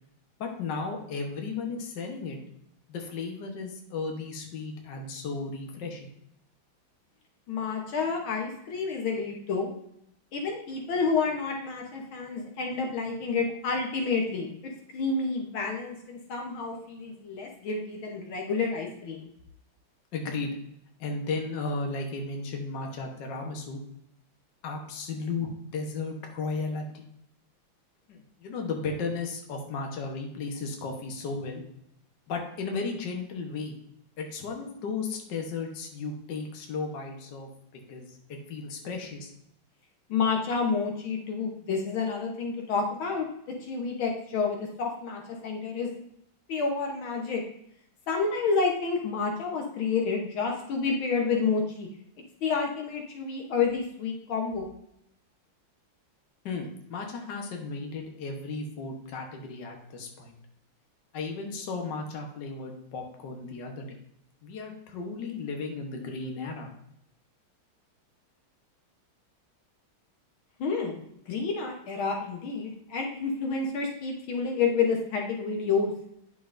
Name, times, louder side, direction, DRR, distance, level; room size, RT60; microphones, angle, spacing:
voice 1, 0.4-2.4 2.9-6.1 20.1-20.5 21.0-23.8 24.6-27.1 28.1-31.6 32.3-33.7 34.2-37.5 37.9-39.3 56.5-60.3 61.1-64.0 64.4-66.7, left 4 dB, 60° left, 2 dB, 1.7 m, -35 dB
voice 2, 7.5-9.7 10.3-14.5 14.9-19.3 40.1-43.3 43.7-45.9 46.5-47.4 48.1-51.9 52.4-54.7 70.6-71.0 71.3-75.9, left 4 dB, 75° left, 1 dB, 1.9 m, -29 dB
9.4 x 6.9 x 2.6 m, 0.75 s
omnidirectional pair, 2.3 m